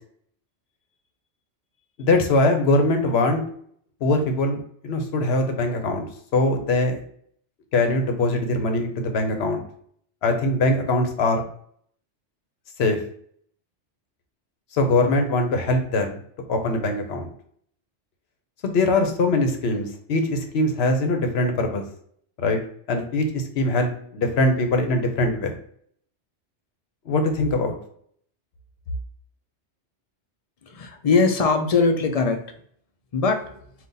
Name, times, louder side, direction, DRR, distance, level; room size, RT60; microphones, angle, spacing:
voice 1, 2.0-3.4 4.0-6.1 6.3-7.0 7.7-9.6 10.2-11.4 12.8-13.0 14.7-16.2 16.5-17.3 18.6-21.8 22.4-22.6 22.9-25.6 27.1-27.8, left 2 dB, 65° left, 5 dB, 1.0 m, -22 dB
voice 2, 30.7-32.4 33.1-33.6, left 4 dB, 50° left, 5 dB, 0.5 m, -21 dB
4.0 x 2.5 x 3.8 m, 0.63 s
omnidirectional pair, 1.2 m